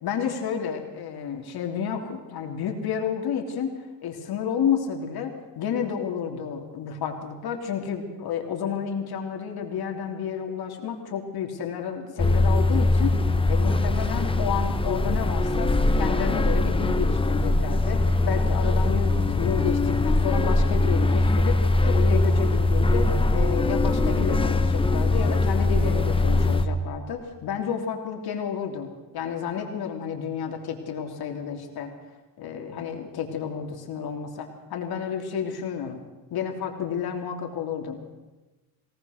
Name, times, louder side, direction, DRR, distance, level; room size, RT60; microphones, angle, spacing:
voice 1, 0.0-3.7 4.0-13.1 13.5-31.9 32.4-36.0 36.3-38.0, left 7 dB, 60° left, 3 dB, 3.2 m, -31 dB
sound 1, 12.2-26.7, left 2 dB, 15° left, 1.1 m, -22 dB
22.0 x 18.5 x 6.5 m, 1.2 s
cardioid pair, 130°, 42 cm